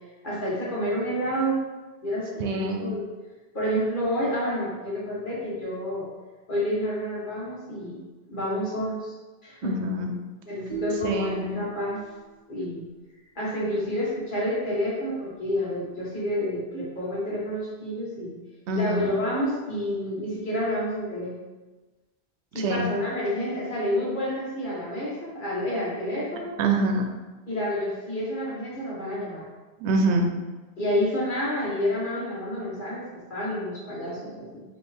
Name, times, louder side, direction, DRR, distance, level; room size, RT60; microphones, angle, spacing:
voice 1, 0.2-1.6 2.0-3.0 3.5-6.1 6.5-9.1 9.4-9.7 10.5-12.0 12.5-12.8 13.4-18.3 18.7-21.3 22.5-26.5 27.5-29.4 30.8-33.0 33.3-34.6, equal, 50° left, -6 dB, 1.4 m, -29 dB
voice 2, 2.4-2.9 9.6-10.1 11.0-11.6 18.7-19.1 22.5-22.9 26.6-27.1 29.8-30.3, right 2 dB, 85° right, 3 dB, 0.9 m, -25 dB
sound 1, 10.7-12.9, right 10 dB, 45° right, 1.1 m, -39 dB
4.3 x 3.0 x 3.4 m, 1.2 s
omnidirectional pair, 1.1 m